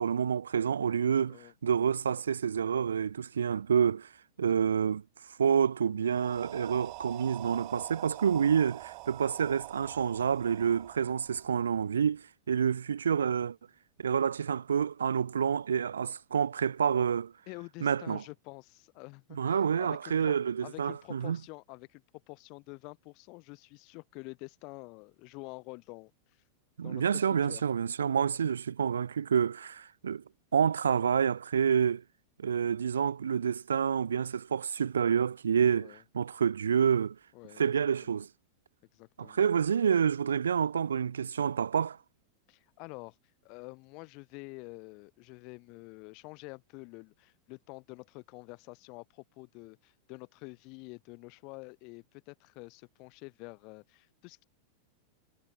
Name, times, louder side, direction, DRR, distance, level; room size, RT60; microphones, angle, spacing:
voice 1, 0.0-4.1 4.4-5.0 5.4-13.6 14.0-17.3 17.8-18.2 19.4-21.4 26.8-30.2 30.5-32.0 32.4-37.2 37.6-38.3 39.2-42.0, right 7 dB, 70° right, 0.5 m, -28 dB
voice 2, 4.5-4.9 17.5-20.3 20.6-26.4 26.8-27.6 35.8-36.0 37.3-37.7 38.0-38.2 38.9-39.4 42.5-43.2 43.4-54.4, left 29 dB, 45° left, 2.5 m, -48 dB
sound 1, 6.1-12.0, right 29 dB, 45° right, 1.2 m, -46 dB
figure-of-eight pair, 90°, 0 cm